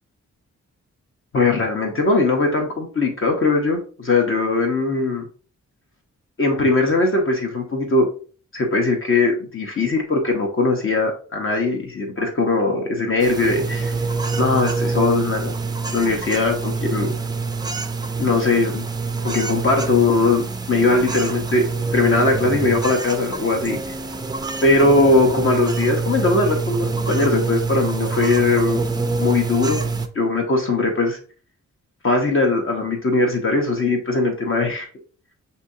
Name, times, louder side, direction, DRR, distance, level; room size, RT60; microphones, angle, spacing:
voice 1, 1.3-5.3 6.4-8.1 8.5-14.0 14.4-15.5 15.9-17.1 18.2-18.8 19.2-23.9 24.6-28.8 29.2-29.8 30.1-31.2 32.0-34.9, left 3 dB, 45° left, 2 dB, 0.8 m, -20 dB
sound 1, 13.2-30.1, right 4 dB, 15° right, 0.3 m, -26 dB
6.8 x 2.8 x 2.6 m, 0.40 s
wide cardioid pair, 150°, 30 cm